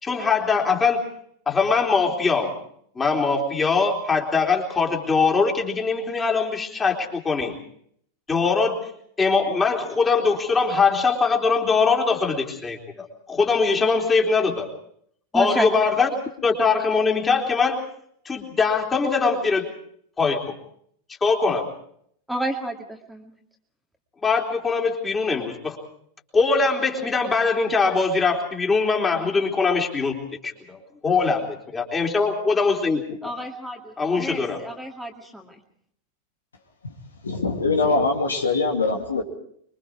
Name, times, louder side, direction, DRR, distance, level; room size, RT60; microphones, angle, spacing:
voice 1, 0.0-1.0 1.5-2.5 3.0-7.5 8.3-8.8 9.2-14.7 15.3-16.1 16.4-17.8 18.3-19.7 20.2-20.5 21.2-21.7 24.2-25.8 26.3-30.2 30.4-30.8 31.0-33.3 34.0-34.6, left 4 dB, 15° left, 1 dB, 3.8 m, -22 dB
voice 2, 15.3-15.7 22.3-23.3 33.2-35.6, right 1 dB, ahead, 2 dB, 2.3 m, -30 dB
voice 3, 37.2-39.2, left 3 dB, 75° left, 3 dB, 2.5 m, -22 dB
26.0 x 23.5 x 4.8 m, 0.66 s
figure-of-eight pair, 90°, 0 cm